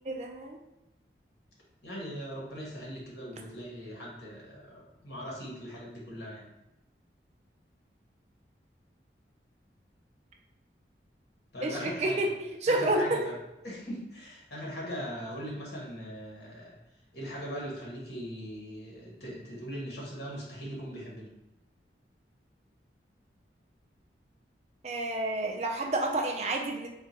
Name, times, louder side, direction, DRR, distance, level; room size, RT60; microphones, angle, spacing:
voice 1, 0.1-0.6 11.6-12.3 12.6-13.3 24.8-26.9, right 1 dB, 35° right, 2 dB, 0.4 m, -29 dB
voice 2, 1.8-6.5 11.5-12.3 12.7-13.3 13.6-16.7 17.1-21.3, equal, 65° left, -4 dB, 1.3 m, -40 dB
3.7 x 2.4 x 4.2 m, 0.94 s
head